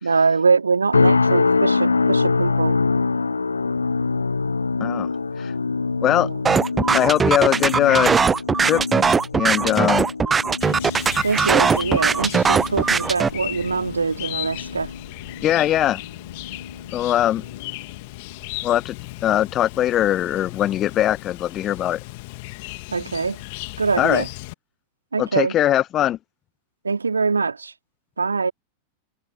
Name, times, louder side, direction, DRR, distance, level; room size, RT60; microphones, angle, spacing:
voice 1, 0.0-2.8 6.1-6.4 11.2-14.9 22.9-23.4 23.8-24.3 25.1-25.5 26.8-27.7 28.2-28.5, right 4 dB, 75° right, 3.0 m, -23 dB
sound 1, 0.9-16.1 16.5-16.9 17.4-17.6, left 4 dB, 80° left, 1.9 m, -25 dB
sound 2, 6.5-13.3, right 5 dB, 15° right, 0.7 m, -19 dB
voice 2, 6.9-8.1 8.6-8.8 9.3-10.1 15.4-16.0 16.9-17.4 18.6-18.9 19.2-22.0 24.0-24.2 25.2-26.2, left 12 dB, 30° left, 1.3 m, -20 dB
Chirp tweet, 10.6-24.5, left 25 dB, 50° left, 2.6 m, -36 dB
figure-of-eight pair, 90°, 0 cm